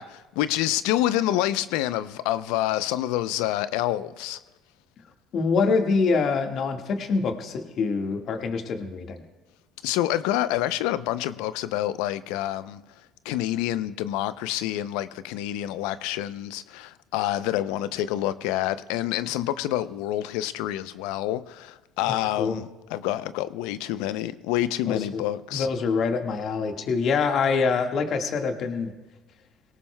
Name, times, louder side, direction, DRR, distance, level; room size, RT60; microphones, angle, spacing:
voice 1, 0.0-4.4 9.8-12.8 13.2-25.7, left 13 dB, 80° left, 0.5 m, -27 dB
voice 2, 5.3-9.2 22.1-22.6 24.8-25.2 25.5-28.9, left 4 dB, 60° left, 1.7 m, -25 dB
22.5 x 18.0 x 2.2 m
supercardioid pair, 70°, 0 cm